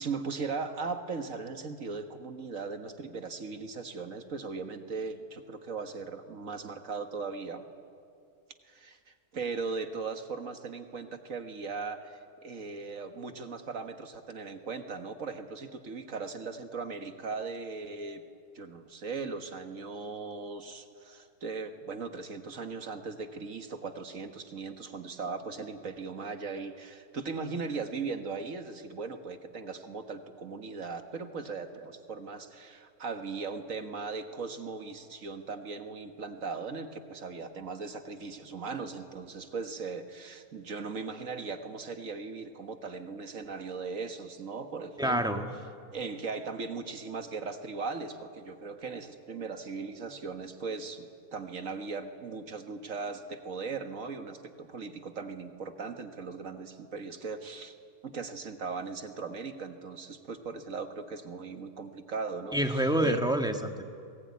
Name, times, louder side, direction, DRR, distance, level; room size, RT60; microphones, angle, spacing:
voice 1, 0.0-7.6 8.6-9.0 9.3-18.2 18.5-45.4 45.9-57.7 58.0-63.2, right 4 dB, 55° right, 7 dB, 1.8 m, -38 dB
voice 2, 45.0-45.5 62.5-63.8, equal, 5° right, 5 dB, 1.5 m, -27 dB
27.5 x 20.0 x 9.6 m, 2.5 s
omnidirectional pair, 1.6 m